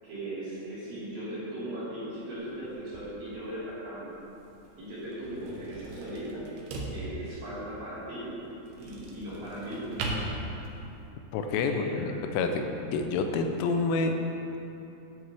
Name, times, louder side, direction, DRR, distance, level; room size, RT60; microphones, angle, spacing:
voice 1, 0.0-4.1 4.8-6.5 6.9-8.3 8.8-10.2 11.7-12.2, right 1 dB, 50° right, -10 dB, 3.7 m, -38 dB
sound 1, 2.4-11.1, right 2 dB, 75° right, 2.6 m, -40 dB
voice 2, 11.3-12.7 12.9-14.1, left 4 dB, 85° left, 5 dB, 3.1 m, -28 dB
10.5 x 8.4 x 3.3 m, 2.9 s
omnidirectional pair, 5.7 m